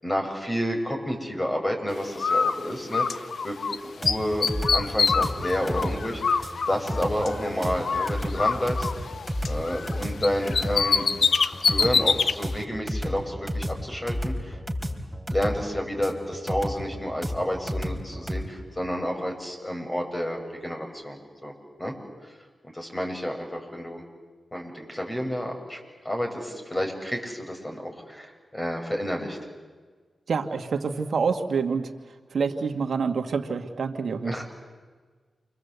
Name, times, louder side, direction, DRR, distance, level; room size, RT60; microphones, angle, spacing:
voice 1, 0.0-8.9 9.4-11.1 11.7-14.6 15.3-21.5 21.8-21.9 22.7-24.0 24.5-25.8 26.0-29.4 34.2-34.4, equal, 20° left, 3 dB, 7.4 m, -30 dB
Bird, 2.2-3.8 4.0-7.5 7.8-9.9 10.2-12.3, left 5 dB, 70° left, 0.8 m, -25 dB
sound 1, 4.0-18.4, equal, 5° right, 4.0 m, -32 dB
voice 2, 30.3-31.9 32.3-34.4, right 5 dB, 70° right, 6 dB, 1.8 m, -27 dB
29.0 x 24.0 x 8.2 m, 1.4 s
cardioid pair, 45°, 0 cm